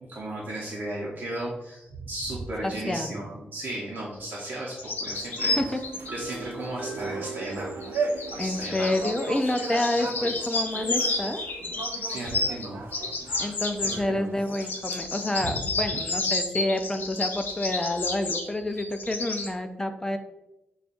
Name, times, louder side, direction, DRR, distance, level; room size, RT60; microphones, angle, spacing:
voice 1, 0.1-5.6 6.1-7.8 8.4-9.0 12.1-12.8 13.2-13.4 13.8-14.3 15.4-15.6, right 1 dB, 60° right, -4 dB, 0.8 m, -35 dB
voice 2, 2.6-3.1 5.4-5.8 8.4-11.4 13.4-20.2, left 1 dB, 15° left, 6 dB, 0.4 m, -28 dB
sound 1, 4.8-6.1 7.4-12.7 12.9-14.0 14.5-19.5, left 3 dB, 65° left, 0.8 m, -31 dB
sound 2, 5.1-15.4, right 4 dB, 90° right, 0.4 m, -38 dB
sound 3, 5.4-13.0, right 4 dB, 35° right, 0.7 m, -43 dB
6.9 x 2.3 x 2.5 m, 0.95 s
wide cardioid pair, 120°, 4 cm